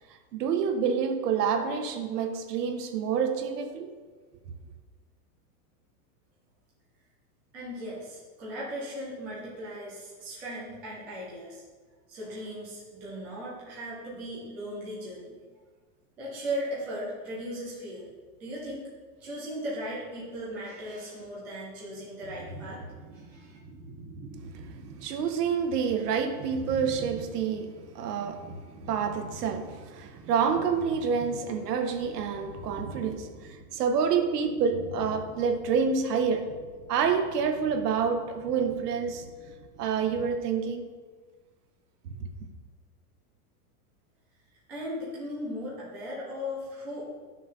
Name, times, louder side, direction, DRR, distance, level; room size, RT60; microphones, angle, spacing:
voice 1, 0.3-3.9 25.0-28.4 28.9-36.5 36.9-39.2 39.8-40.8 42.2-42.3, right 6 dB, 75° right, 1.5 m, -28 dB
voice 2, 7.5-11.6 12.1-15.4 16.2-18.1 18.4-18.9 19.2-23.6 44.7-47.1, equal, 5° right, 0.3 m, -37 dB
sound 1, 22.2-40.4, right 2 dB, 30° right, 1.3 m, -46 dB
11.0 x 6.2 x 5.6 m
supercardioid pair, 170°, 47 cm